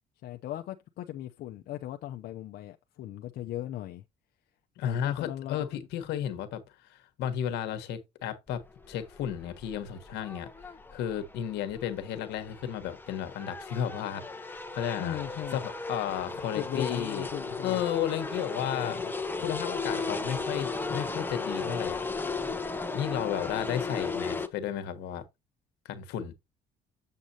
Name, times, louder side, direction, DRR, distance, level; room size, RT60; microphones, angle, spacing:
voice 1, 0.2-4.0 4.8-5.9 15.0-15.6 16.5-17.8 18.7-19.1, left 13 dB, 70° left, 0.7 m, -38 dB
voice 2, 4.8-6.6 6.9-10.5 10.9-15.2 15.5-17.3 17.6-19.0 19.4-22.0 22.9-25.2 25.8-26.3, left 10 dB, 85° left, 1.3 m, -33 dB
sound 1, 8.5-24.5, left 3 dB, 10° left, 1.0 m, -36 dB
7.5 x 6.7 x 2.8 m
cardioid pair, 110°, 17 cm